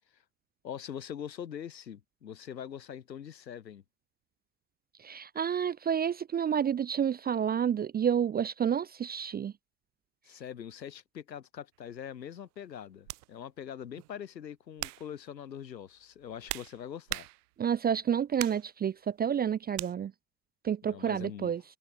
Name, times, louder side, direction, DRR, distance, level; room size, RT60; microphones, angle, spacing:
voice 1, 0.6-3.8 10.3-17.3 20.8-21.5, left 9 dB, 80° left, 4.5 m, -43 dB
voice 2, 5.0-9.5 17.6-20.1 20.6-21.6, right 8 dB, 20° right, 0.6 m, -29 dB
sound 1, 11.7-11.9 13.1-13.3 14.0-14.2 14.8-15.1 16.0-17.7 18.4-18.7 19.7-19.9, right 22 dB, 60° right, 3.0 m, -39 dB
open air
figure-of-eight pair, 75°, 50 cm